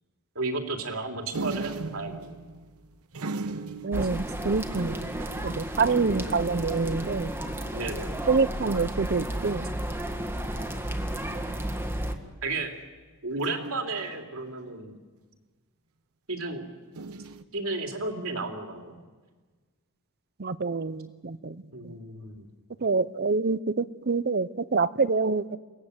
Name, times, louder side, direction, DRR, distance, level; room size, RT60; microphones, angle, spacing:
voice 1, 0.3-2.4 4.8-5.1 5.8-6.3 7.7-8.2 12.4-12.7 13.2-15.0 16.3-16.6 17.5-19.0 21.7-22.5, right 3 dB, 70° right, 2 dB, 3.2 m, -33 dB
sound 1, 1.3-7.3 7.7-7.8 8.0-8.5 9.4-9.9 11.3-11.8 13.4-14.7 16.9-17.4, right 3 dB, 90° right, 1.0 m, -39 dB
voice 2, 3.8-5.1 5.4-7.3 8.3-9.7 20.4-22.0 22.8-25.6, right 4 dB, 50° right, 15 dB, 0.7 m, -26 dB
sound 2, 3.9-12.2, right 1 dB, 10° right, 1.7 m, -33 dB
28.5 x 18.5 x 8.0 m, 1.4 s
head